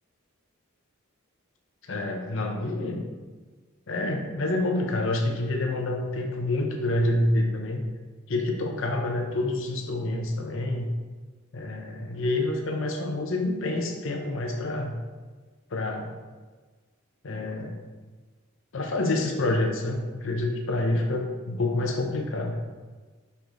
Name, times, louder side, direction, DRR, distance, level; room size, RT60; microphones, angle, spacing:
voice 1, 1.8-3.0 3.9-7.8 8.3-10.9 11.5-15.0 15.7-16.2 17.2-17.8 18.7-22.6, left 2 dB, 65° left, 3 dB, 0.7 m, -27 dB
5.4 x 4.9 x 3.9 m, 1.4 s
head